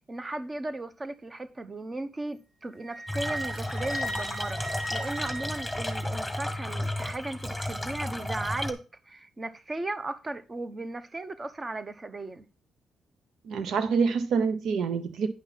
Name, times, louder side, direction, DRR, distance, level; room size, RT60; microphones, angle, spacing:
voice 1, 0.1-12.5, right 2 dB, 25° right, 1.0 m, -36 dB
Wind instrument woodwind instrument, 2.8-6.3, right 1 dB, 65° right, 2.2 m, -37 dB
sound 1, 3.1-8.7, left 1 dB, ahead, 1.8 m, -33 dB
voice 2, 13.4-15.3, right 5 dB, 80° right, 0.9 m, -26 dB
10.5 x 5.7 x 4.1 m
cardioid pair, 90°, 0 cm